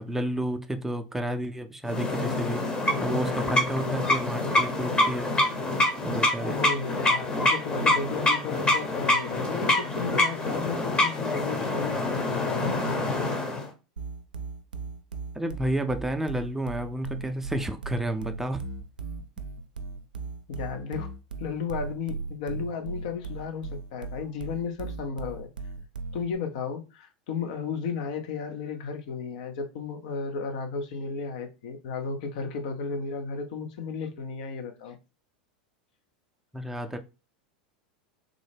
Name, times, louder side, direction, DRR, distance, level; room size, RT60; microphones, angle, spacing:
voice 1, 0.0-2.6 3.0-5.3 6.0-6.6 15.3-18.6 36.5-37.0, right 1 dB, 5° right, 0.5 m, -31 dB
sound 1, 1.9-13.7, left 2 dB, 20° left, 0.8 m, -26 dB
voice 2, 6.4-13.1 20.5-21.1 21.4-25.5 26.1-35.0, left 5 dB, 65° left, 0.6 m, -34 dB
sound 2, 14.0-26.3, right 4 dB, 90° right, 0.4 m, -37 dB
3.6 x 2.1 x 3.3 m
hypercardioid pair, 95°, 4 cm